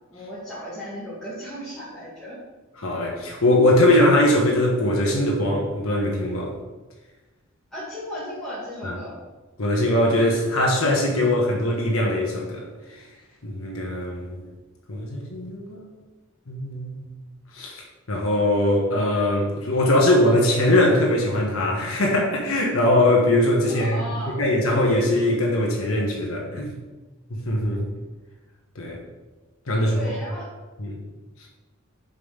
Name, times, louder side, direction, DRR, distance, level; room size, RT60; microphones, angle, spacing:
voice 1, 0.1-2.4 7.7-9.2 23.7-24.4 29.9-30.5, equal, 5° left, -11 dB, 2.0 m, -35 dB
voice 2, 2.8-6.5 8.8-9.0 9.6-12.6 13.4-14.4 14.9-15.9 16.5-17.0 17.5-17.8 18.1-26.8 27.3-27.9 28.7-29.0 29.7-30.0 30.8-31.0, left 1 dB, 75° left, -1 dB, 1.2 m, -21 dB
5.5 x 5.4 x 6.5 m, 1.2 s
head